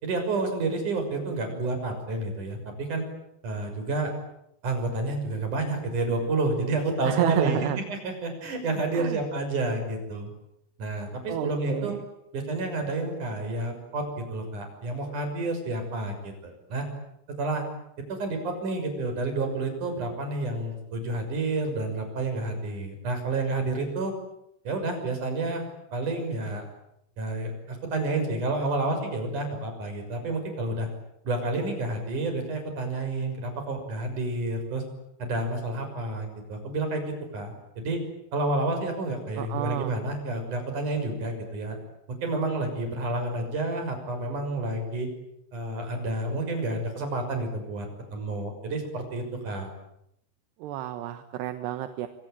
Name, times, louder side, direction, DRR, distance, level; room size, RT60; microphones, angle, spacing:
voice 1, 0.0-3.0 3.4-4.1 4.6-10.3 10.8-12.0 12.3-16.9 17.4-17.6 18.1-24.1 24.6-25.6 25.9-26.7 27.2-30.9 31.2-34.8 35.2-38.0 38.3-41.8 42.1-45.1 45.5-49.7, right 2 dB, 40° right, 6 dB, 7.4 m, -30 dB
voice 2, 7.0-7.8 8.9-9.2 11.3-12.0 39.4-39.9 50.6-52.1, right 13 dB, 70° right, 9 dB, 2.9 m, -30 dB
26.0 x 25.5 x 9.0 m, 0.77 s
omnidirectional pair, 5.7 m